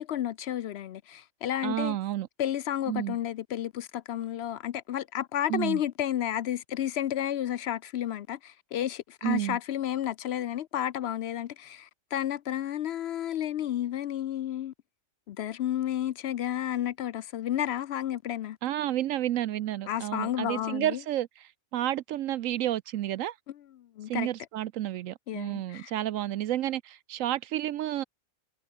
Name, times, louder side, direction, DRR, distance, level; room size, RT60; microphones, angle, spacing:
voice 1, 0.0-2.0 2.4-14.7 15.3-18.6 19.9-21.0 24.0-24.3 25.3-25.9, left 11 dB, 65° left, 0.7 m, -31 dB
voice 2, 1.6-2.3 2.9-3.2 5.5-5.8 9.2-9.6 18.6-23.4 24.1-28.0, right 13 dB, 80° right, 1.0 m, -31 dB
omnidirectional pair, 1.4 m